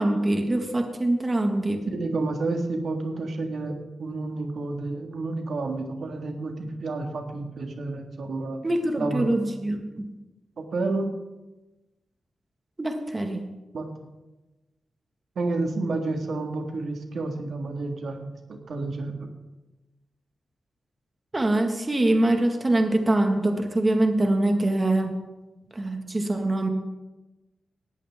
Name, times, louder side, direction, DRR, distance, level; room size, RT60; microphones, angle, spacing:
voice 1, 0.0-1.8 8.6-10.1 12.8-13.4 21.3-25.2 25.8-26.7, right 1 dB, 25° right, 4 dB, 1.7 m, -24 dB
voice 2, 1.9-8.6 9.0-9.3 10.6-11.2 13.7-13.9 15.4-19.3, right 3 dB, 70° right, 4 dB, 1.9 m, -30 dB
18.0 x 14.0 x 3.6 m, 1.1 s
wide cardioid pair, 95°, 0 cm